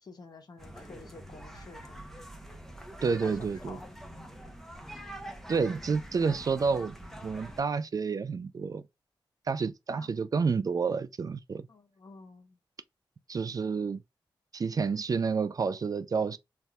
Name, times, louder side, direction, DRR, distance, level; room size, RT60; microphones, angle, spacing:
voice 1, 0.0-2.2 3.2-3.8 9.9-10.1 11.7-12.6, left 3 dB, 50° left, 0.8 m, -50 dB
sound 1, 0.6-7.6, right 1 dB, 5° left, 0.8 m, -45 dB
voice 2, 3.0-3.8 5.5-7.0 7.2-8.8 9.5-11.7 13.3-14.0 14.5-16.4, right 5 dB, 45° right, 0.3 m, -29 dB
3.3 x 2.6 x 2.3 m
cardioid pair, 60°, 9 cm